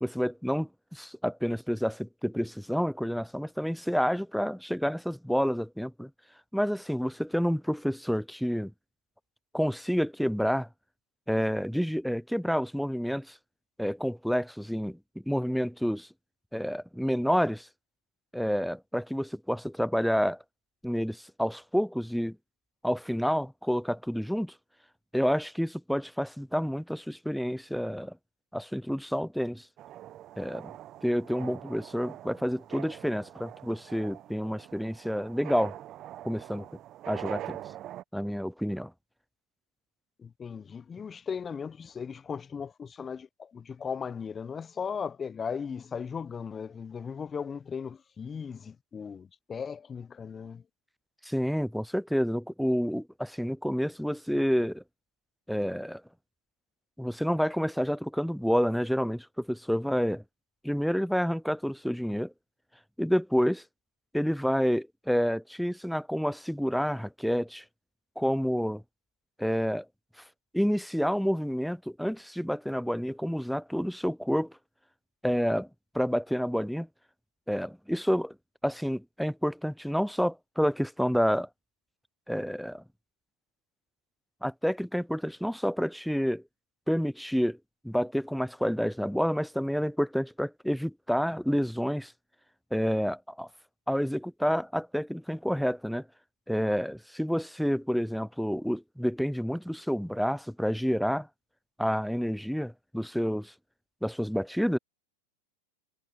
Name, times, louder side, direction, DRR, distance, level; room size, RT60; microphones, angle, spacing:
voice 1, 0.0-6.1 6.5-8.7 9.5-10.7 11.3-13.4 13.8-15.0 15.3-16.1 16.5-17.7 18.3-20.4 20.8-22.4 22.8-24.5 25.1-28.2 28.5-29.7 30.4-30.7 31.0-35.8 36.2-36.7 37.1-37.6 38.1-38.9 51.2-54.8 55.5-56.0 57.0-60.2 60.6-62.3 63.0-63.6 64.1-67.6 68.2-68.8 69.4-69.9 70.5-74.6 75.2-75.7 75.9-76.9 77.5-78.4 78.6-81.5 82.3-82.8 84.4-86.4 86.9-87.6 87.8-92.1 92.7-93.5 93.9-96.1 96.5-101.3 101.8-103.5 104.0-104.8, equal, ahead, 0.3 m, -29 dB
sound 1, 29.8-38.0, right 13 dB, 40° right, 0.9 m, -44 dB
voice 2, 40.2-50.6, left 6 dB, 20° left, 0.9 m, -37 dB
hypercardioid pair, 90°, 0 cm